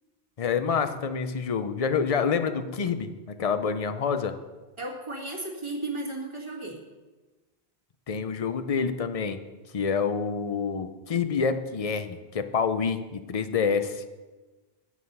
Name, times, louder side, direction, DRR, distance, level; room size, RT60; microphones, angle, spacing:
voice 1, 0.4-4.3 8.1-9.4 9.7-14.0, left 6 dB, 40° left, 10 dB, 0.7 m, -27 dB
voice 2, 4.8-6.8, right 2 dB, 30° right, -1 dB, 1.9 m, -34 dB
9.9 x 8.5 x 5.4 m, 1.2 s
omnidirectional pair, 1.1 m